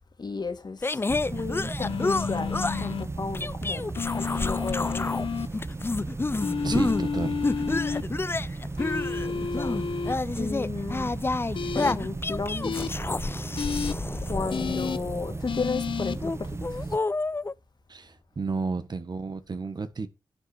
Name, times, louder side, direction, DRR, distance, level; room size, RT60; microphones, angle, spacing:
voice 1, 0.2-1.0 1.3-5.3 9.3-9.9 10.4-11.1 11.7-12.8 14.2-16.9, left 4 dB, 60° left, 2.3 m, -34 dB
sound 1, 0.8-2.9 3.3-5.2 5.5-7.0 7.4-15.4 16.1-17.5, left 3 dB, 30° left, 0.4 m, -30 dB
sound 2, 1.1-17.0, right 3 dB, 30° right, 0.6 m, -35 dB
sound 3, 1.8-3.0 4.0-5.5 6.4-8.0 8.8-10.1 11.5-11.9 12.6-12.9 13.6-13.9 14.5-15.0 15.5-16.2, left 6 dB, 85° left, 0.8 m, -31 dB
voice 2, 6.6-7.5 17.9-20.1, right 4 dB, 60° right, 1.6 m, -32 dB
11.0 x 7.1 x 4.5 m
cardioid pair, 50°, 8 cm